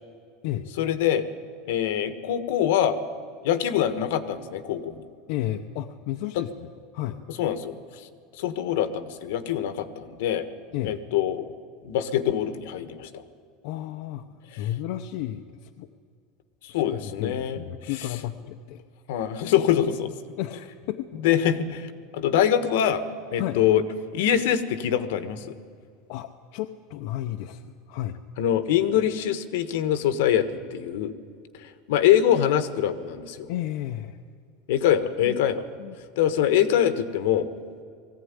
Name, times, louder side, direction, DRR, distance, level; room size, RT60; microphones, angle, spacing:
voice 1, 0.8-1.2 1.7-3.0 3.4-5.1 6.3-6.4 7.4-8.1 8.3-10.4 10.8-11.5 11.8-13.2 14.5-14.6 16.6-17.6 19.1-20.1 21.2-23.0 23.3-23.8 24.1-25.5 28.4-31.1 31.6-33.5 34.7-35.6 36.2-37.5, left 10 dB, 80° left, 11 dB, 1.4 m, -24 dB
voice 2, 5.3-7.2 10.7-11.0 13.6-14.3 14.6-15.9 16.7-18.8 20.4-21.1 23.4-23.6 26.1-28.2 33.5-34.2 35.2-35.4 35.8-36.0, left 13 dB, 65° left, 5 dB, 0.8 m, -32 dB
20.0 x 15.5 x 9.8 m, 2.3 s
supercardioid pair, 155°, 0 cm